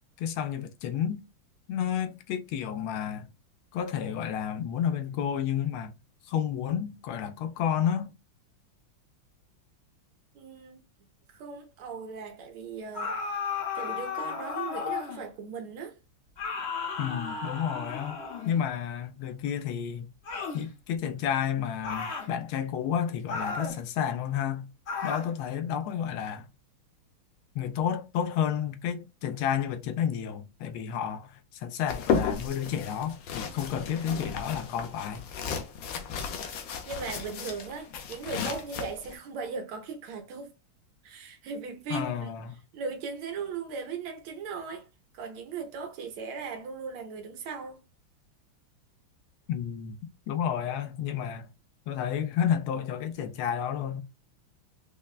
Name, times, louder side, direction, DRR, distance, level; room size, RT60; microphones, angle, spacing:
voice 1, 0.2-1.2 1.7-3.3 3.7-5.9 6.3-8.1 17.0-18.2 18.5-20.1 20.5-24.7 25.0-26.5 27.5-35.2 41.9-42.6 49.5-51.5 51.9-54.0, left 9 dB, 90° left, 1.5 m, -31 dB
voice 2, 10.3-10.8 11.3-13.3 13.7-16.0 36.9-40.5 41.0-42.3 42.7-44.9 45.1-47.8, right 5 dB, 85° right, 1.7 m, -38 dB
sound 1, 12.9-15.3 16.4-18.6 20.2-20.6 21.8-22.3 23.3-23.8 24.9-25.3, left 5 dB, 55° left, 0.7 m, -34 dB
sound 2, 31.9-39.2, left 6 dB, 75° left, 1.4 m, -34 dB
5.4 x 2.1 x 2.3 m
omnidirectional pair, 2.3 m